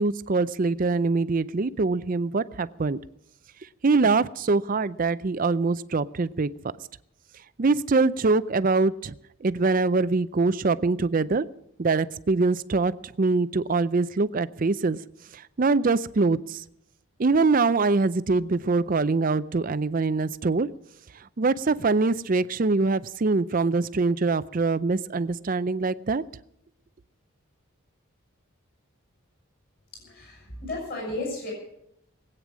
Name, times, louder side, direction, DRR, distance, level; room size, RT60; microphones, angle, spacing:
voice 1, 0.0-3.0 3.8-6.5 7.6-9.1 9.4-11.5 11.8-15.0 15.3-16.6 17.2-20.7 21.4-26.2, right 3 dB, 40° right, 15 dB, 0.5 m, -23 dB
voice 2, 29.9-31.5, left 2 dB, 45° left, -2 dB, 6.5 m, -34 dB
20.5 x 9.0 x 6.2 m, 0.79 s
head